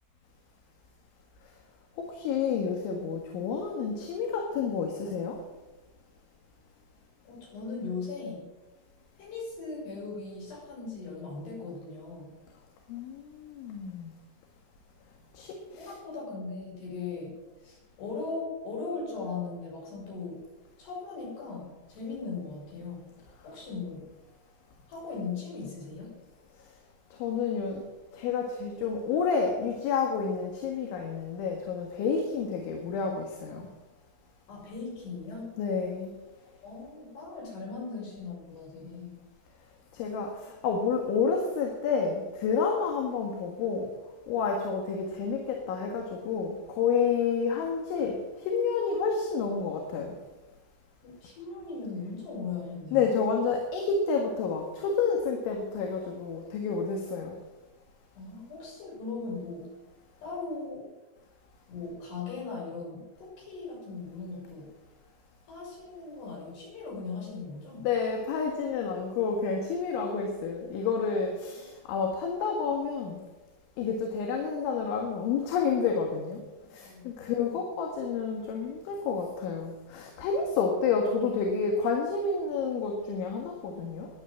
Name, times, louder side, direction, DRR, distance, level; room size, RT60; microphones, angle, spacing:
voice 1, 2.0-5.4 12.9-14.2 15.3-15.9 27.1-27.8 28.1-33.6 35.6-36.1 39.9-43.9 44.3-50.2 52.9-57.4 67.9-73.2 73.8-76.4 76.7-84.1, left 5 dB, 70° left, 2 dB, 3.9 m, -29 dB
voice 2, 7.2-8.5 9.2-12.3 15.7-20.4 20.8-23.0 23.4-24.1 24.9-26.1 34.5-35.5 36.6-39.2 51.0-53.2 58.1-59.7 60.2-60.9 61.7-64.7 65.5-67.9 71.2-72.1 76.6-77.8, left 4 dB, 55° left, -4 dB, 8.4 m, -39 dB
16.0 x 10.5 x 7.5 m, 1.1 s
omnidirectional pair, 5.9 m